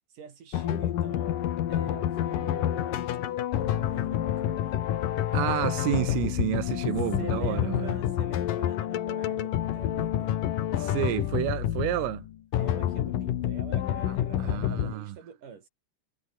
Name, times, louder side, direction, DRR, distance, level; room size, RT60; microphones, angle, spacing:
voice 1, 0.1-3.1 3.6-4.8 7.2-10.4 12.6-15.7, right 6 dB, 45° right, 3.8 m, -45 dB
sound 1, 0.5-14.9, left 11 dB, 65° left, 2.3 m, -28 dB
voice 2, 5.3-7.9 10.8-12.3 14.1-15.2, right 14 dB, 80° right, 4.2 m, -30 dB
omnidirectional pair, 5.8 m